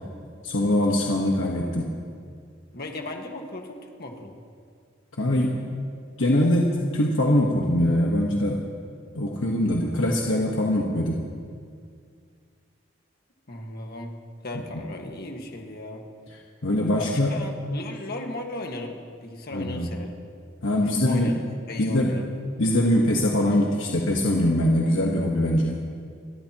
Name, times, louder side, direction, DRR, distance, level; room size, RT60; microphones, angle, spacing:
voice 1, 0.4-1.9 5.2-5.6 6.2-8.6 9.1-11.2 16.6-17.4 19.5-19.9 20.6-21.3 21.8-22.1 22.6-25.7, left 1 dB, 85° left, -1 dB, 1.3 m, -22 dB
voice 2, 2.7-4.4 13.5-14.1 14.4-16.0 16.9-20.1 21.0-21.4 21.7-22.3, left 2 dB, 55° left, 2 dB, 1.6 m, -36 dB
29.5 x 13.5 x 3.0 m, 2.2 s
head